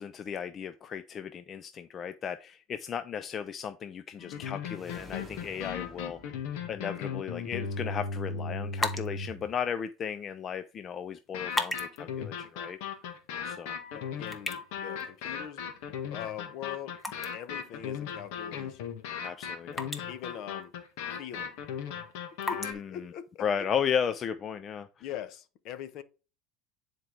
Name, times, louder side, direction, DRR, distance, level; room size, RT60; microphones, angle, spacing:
voice 1, 0.0-6.4 6.7-12.8 13.4-13.8 19.2-19.9 22.5-23.1 23.4-25.0, left 7 dB, 35° left, 0.5 m, -35 dB
sound 1, 4.2-9.5 11.3-22.7, left 6 dB, 75° left, 1.6 m, -37 dB
sound 2, 4.6-7.2, left 1 dB, 5° right, 2.5 m, -50 dB
sound 3, 8.6-24.0, left 2 dB, 10° left, 1.1 m, -42 dB
voice 2, 13.9-15.6 16.1-17.0 17.3-18.9 20.1-20.7 21.2-21.5 22.5-23.4 25.0-26.0, left 10 dB, 55° left, 0.9 m, -42 dB
10.0 x 4.5 x 3.3 m
supercardioid pair, 130°, 0 cm